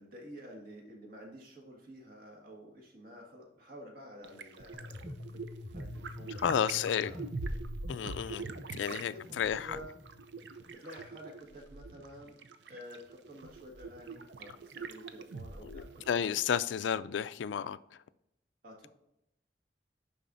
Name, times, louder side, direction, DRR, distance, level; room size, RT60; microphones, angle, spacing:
voice 1, 0.0-5.2 5.7-7.2 8.8-9.9 10.7-12.4 12.7-16.0 18.6-18.9, equal, 55° right, -1 dB, 1.7 m, -50 dB
sound 1, 4.2-16.4, right 3 dB, 75° right, 0.6 m, -44 dB
sound 2, 4.7-10.7, left 2 dB, ahead, 0.6 m, -47 dB
voice 2, 6.3-7.1 7.9-8.4 8.7-9.8 15.6-17.8, left 8 dB, 90° left, 15 dB, 0.3 m, -32 dB
11.0 x 4.1 x 2.6 m, 0.84 s
head